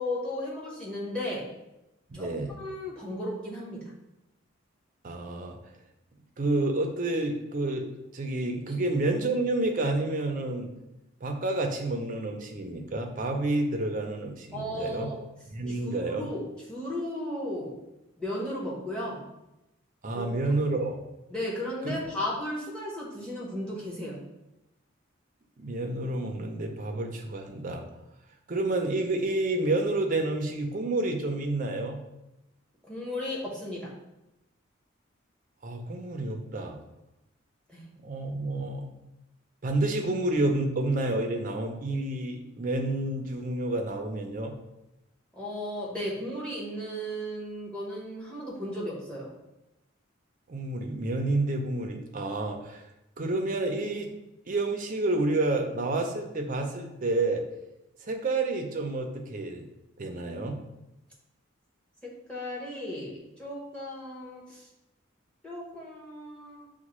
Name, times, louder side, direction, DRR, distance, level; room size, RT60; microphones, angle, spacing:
voice 1, 0.0-1.5 2.1-2.3 2.6-3.8 14.5-15.2 15.7-16.4 16.7-17.8 18.2-19.2 20.1-20.3 21.3-24.2 32.9-33.9 37.7-37.8 45.4-49.3 62.3-64.6 65.4-66.7, left 1 dB, 5° left, -5 dB, 0.9 m, -35 dB
voice 2, 2.1-2.5 5.0-5.6 6.4-7.9 8.1-10.7 11.2-15.1 15.5-16.3 20.0-21.0 21.8-22.0 25.6-27.8 28.5-32.0 35.6-36.8 38.0-38.9 39.6-44.5 50.5-52.8 53.2-54.1 54.5-57.4 58.1-59.7 60.0-60.6, right 2 dB, 40° right, 3 dB, 0.5 m, -29 dB
6.2 x 2.2 x 3.0 m, 0.94 s
head